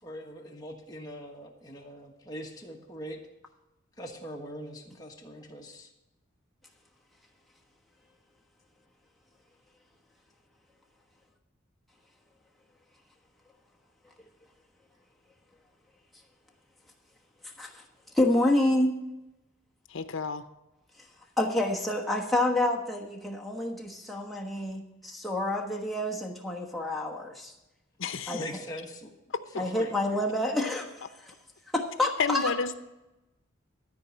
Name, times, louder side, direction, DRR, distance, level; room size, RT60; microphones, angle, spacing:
voice 1, 0.0-3.2 4.0-5.9 28.3-29.1 29.5-29.9, equal, 20° left, 0 dB, 1.4 m, -42 dB
voice 2, 18.1-19.1 21.4-27.5 28.3-28.4 29.6-31.0 31.2-31.3 31.7-32.5, left 1 dB, ahead, -2 dB, 1.2 m, -28 dB
voice 3, 19.9-20.4 28.0-28.3 32.2-32.7, left 5 dB, 70° left, 10 dB, 0.7 m, -30 dB
13.0 x 4.7 x 8.4 m, 0.97 s
head